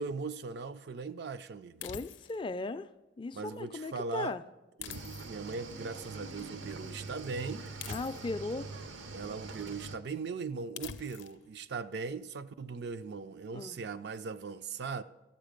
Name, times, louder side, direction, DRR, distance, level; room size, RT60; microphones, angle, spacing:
voice 1, 0.0-1.9 3.3-4.4 4.8-7.7 9.1-15.0, right 4 dB, 60° right, 0.4 m, -39 dB
sound 1, 1.8-2.5 4.8-5.6 7.8-8.5 10.8-11.4, left 8 dB, 80° left, 0.5 m, -45 dB
voice 2, 1.8-2.9 3.2-4.4 7.9-8.7 13.5-13.8, left 3 dB, 25° left, 0.3 m, -37 dB
Cricket / Waves surf, 4.9-10.0, right 3 dB, 85° right, 0.8 m, -44 dB
13.0 x 8.1 x 5.1 m
head